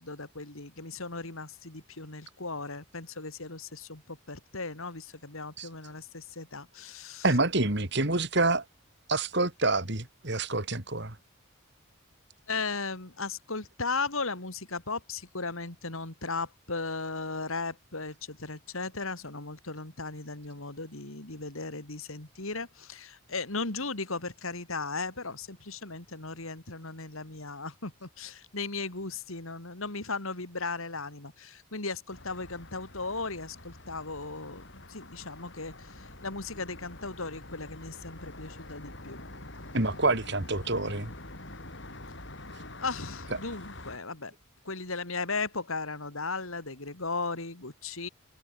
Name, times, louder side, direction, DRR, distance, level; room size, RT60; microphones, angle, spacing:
voice 1, 0.0-7.3 12.5-39.2 42.8-44.3 44.6-48.1, left 3 dB, 70° left, 3.1 m, -36 dB
voice 2, 7.2-8.6 9.1-11.2 39.7-41.1, right 2 dB, 50° right, 3.0 m, -27 dB
sound 1, 32.1-44.0, left 2 dB, 55° left, 6.1 m, -46 dB
head